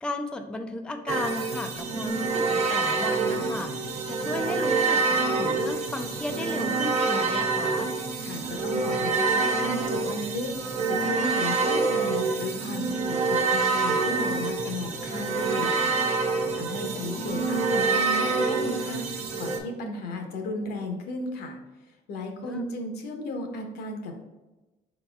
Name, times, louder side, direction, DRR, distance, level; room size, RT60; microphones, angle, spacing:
voice 1, 0.0-7.9 16.8-17.3 22.4-22.7, left 2 dB, 5° left, 5 dB, 0.3 m, -35 dB
sound 1, 1.1-19.6, right 4 dB, 40° right, 0.6 m, -26 dB
voice 2, 8.2-21.6 22.1-24.2, left 2 dB, 75° left, 4 dB, 0.9 m, -35 dB
4.6 x 4.0 x 2.3 m, 1.1 s
cardioid pair, 110°, 17 cm